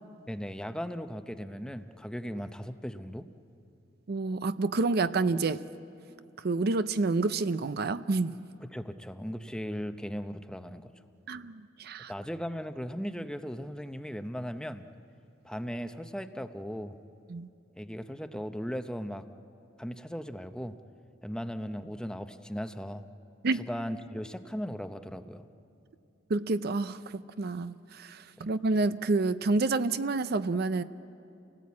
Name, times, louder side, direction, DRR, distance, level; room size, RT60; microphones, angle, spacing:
voice 1, 0.3-3.3 8.7-10.9 12.1-14.9 15.4-17.0 17.8-19.3 19.8-20.8 21.2-23.0 23.5-25.5 28.4-28.5, equal, 5° left, 0.7 m, -37 dB
voice 2, 4.1-5.6 6.4-8.4 11.3-12.1 17.3-17.5 23.4-23.6 26.3-30.8, right 3 dB, 55° right, 0.5 m, -28 dB
29.5 x 18.5 x 8.5 m
head